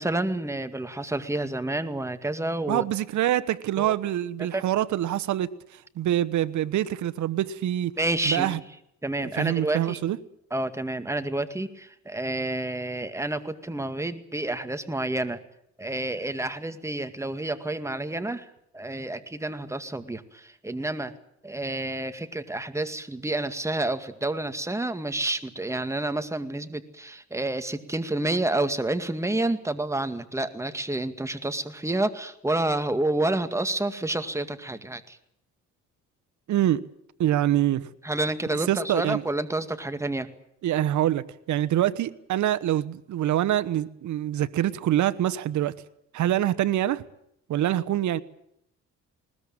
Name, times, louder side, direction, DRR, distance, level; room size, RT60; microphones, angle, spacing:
voice 1, 0.0-2.9 3.8-3.9 4.5-4.6 8.0-8.6 9.0-10.0 10.5-15.4 15.8-21.1 21.4-35.2 38.0-40.3, right 2 dB, 10° right, 2.1 m, -29 dB
voice 2, 2.7-7.9 8.3-8.6 9.2-10.2 36.5-36.8 37.2-37.9 38.5-39.2 40.6-45.7 46.1-47.0 47.5-48.2, right 12 dB, 70° right, 1.1 m, -25 dB
20.5 x 20.0 x 8.8 m
cardioid pair, 90°, 30 cm